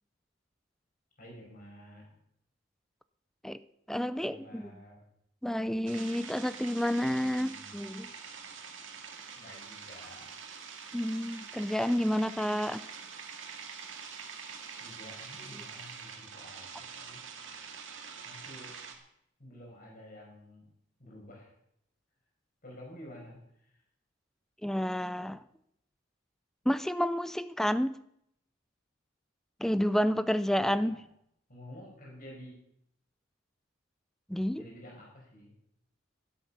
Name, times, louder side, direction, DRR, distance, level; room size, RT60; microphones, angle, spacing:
voice 1, 1.2-2.2 4.2-5.1 7.4-7.8 9.3-10.4 14.7-17.2 18.2-18.8 19.4-20.7 21.0-21.5 22.6-23.8 30.5-31.1 31.5-32.6 34.3-35.5, left 1 dB, 45° left, -2 dB, 5.4 m, -51 dB
voice 2, 3.9-4.7 5.4-8.1 10.9-12.8 24.6-25.4 26.7-27.9 29.6-31.0 34.3-34.6, equal, ahead, 14 dB, 0.4 m, -30 dB
sound 1, 5.9-19.0, right 6 dB, 75° right, 2.1 m, -45 dB
12.0 x 12.0 x 5.7 m, 0.74 s
head